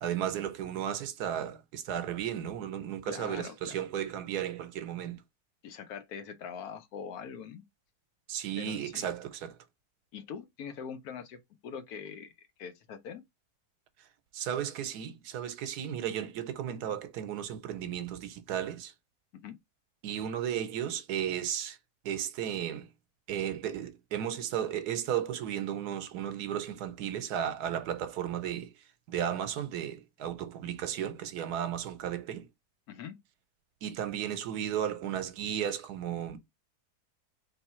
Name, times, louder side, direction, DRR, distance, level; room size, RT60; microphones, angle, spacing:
voice 1, 0.0-5.2 8.3-9.6 14.3-18.9 20.0-21.8 22.0-22.9 23.3-28.7 29.1-32.5 33.8-36.4, right 10 dB, 80° right, 1.2 m, -34 dB
voice 2, 3.1-3.8 5.6-7.6 8.6-9.1 10.1-12.3 12.6-13.2 19.3-19.6 32.9-33.2, left 7 dB, 75° left, 1.1 m, -43 dB
3.4 x 3.0 x 4.2 m
omnidirectional pair, 1.7 m